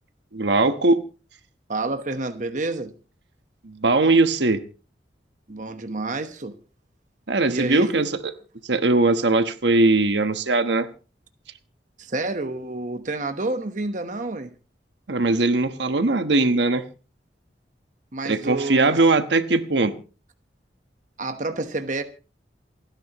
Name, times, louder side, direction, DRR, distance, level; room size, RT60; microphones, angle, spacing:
voice 1, 0.3-1.0 3.6-4.6 7.3-8.1 8.6-10.9 15.1-16.8 18.2-19.9, right 2 dB, 75° right, 1.2 m, -20 dB
voice 2, 1.7-2.9 5.5-6.6 7.5-7.9 12.0-14.5 18.1-19.0 21.2-22.0, right 2 dB, 45° right, 1.2 m, -29 dB
28.5 x 10.5 x 3.0 m
head